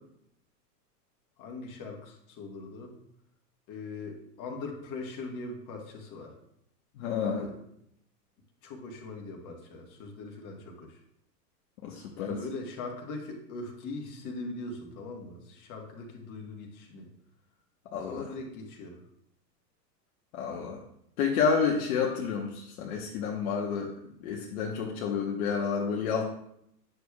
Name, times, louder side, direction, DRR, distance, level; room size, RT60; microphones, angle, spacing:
voice 1, 1.4-2.9 3.7-6.3 7.2-7.5 8.6-11.0 12.1-17.1 18.0-19.0, left 3 dB, 40° left, 1 dB, 1.6 m, -41 dB
voice 2, 7.0-7.5 11.8-12.4 17.9-18.3 20.3-20.8 21.2-23.9 24.2-26.2, left 6 dB, 55° left, -1 dB, 1.1 m, -29 dB
9.1 x 6.4 x 2.3 m, 0.74 s
hypercardioid pair, 110°, 49 cm